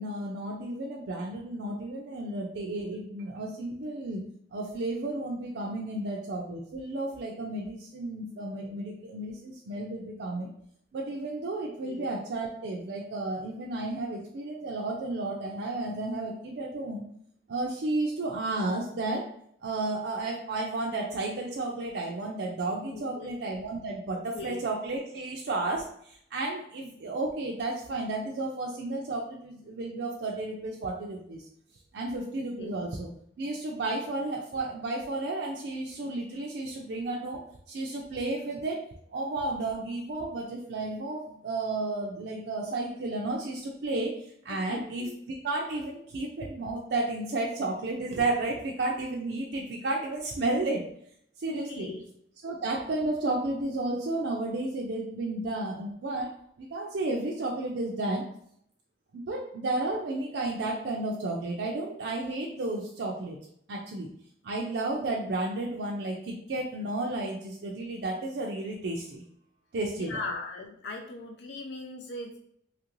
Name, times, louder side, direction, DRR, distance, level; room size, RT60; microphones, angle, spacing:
voice 1, 0.0-4.2 4.5-10.5 10.9-17.0 17.5-19.3 19.6-31.4 31.9-33.1 33.4-50.8 51.4-51.9 52.4-58.3 59.1-63.4 63.7-64.1 64.4-69.2 69.7-70.2, right 2 dB, 70° right, -2 dB, 0.4 m, -32 dB
voice 2, 22.9-23.3 24.1-24.6 32.6-32.7 44.5-45.2 51.5-52.0 65.1-65.2 69.9-72.4, left 3 dB, 70° left, 2 dB, 0.4 m, -39 dB
2.9 x 2.5 x 3.0 m, 0.69 s
head